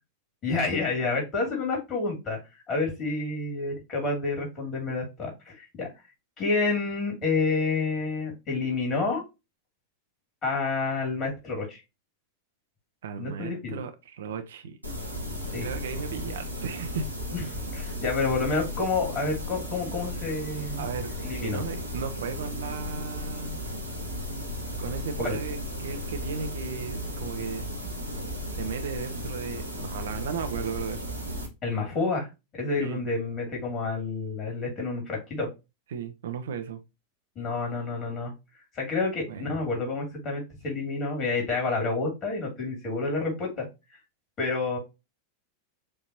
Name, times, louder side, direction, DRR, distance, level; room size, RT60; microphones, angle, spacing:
voice 1, 0.4-2.4 2.7-5.9 6.4-9.2 10.4-11.8 13.2-13.8 15.5-15.7 17.3-17.4 17.7-20.8 21.2-21.6 25.2-25.4 31.6-32.3 32.5-35.5 37.3-38.3 38.7-43.7 44.4-44.8, left 3 dB, 30° left, 2.7 m, -29 dB
voice 2, 13.0-14.8 15.6-17.1 20.8-23.6 24.8-27.7 28.0-28.1 28.5-31.0 32.8-33.0 35.9-36.8 39.3-39.5, right 6 dB, 60° right, 0.6 m, -35 dB
sound 1, 14.8-31.5, equal, 90° right, 1.2 m, -35 dB
6.6 x 2.8 x 2.8 m
figure-of-eight pair, 90°, 0 cm